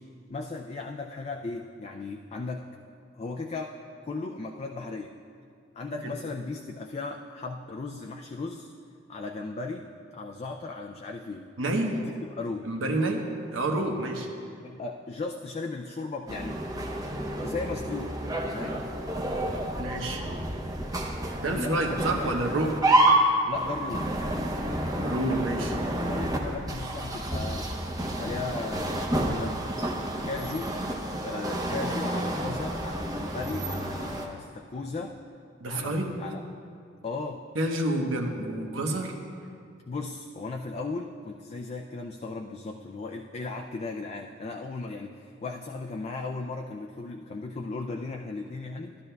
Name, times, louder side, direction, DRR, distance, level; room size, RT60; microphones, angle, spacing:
voice 1, 0.3-2.7 3.1-3.7 4.0-5.2 5.8-8.7 9.1-11.5 12.0-12.8 14.6-16.6 17.4-18.2 18.5-18.8 21.4-22.4 23.4-24.1 25.8-27.7 28.2-29.6 30.2-30.8 31.2-35.1 35.7-36.4 37.0-37.4 39.9-49.0, left 3 dB, 30° left, 2 dB, 0.3 m, -36 dB
voice 2, 11.6-12.0 12.7-13.2 13.5-14.3 19.8-20.2 21.4-22.8 25.0-25.8 35.6-36.1 37.5-39.1, right 1 dB, 80° right, 2 dB, 1.0 m, -28 dB
sound 1, 16.3-34.3, right 1 dB, 20° right, 0.6 m, -29 dB
12.5 x 12.0 x 2.3 m, 2.4 s
head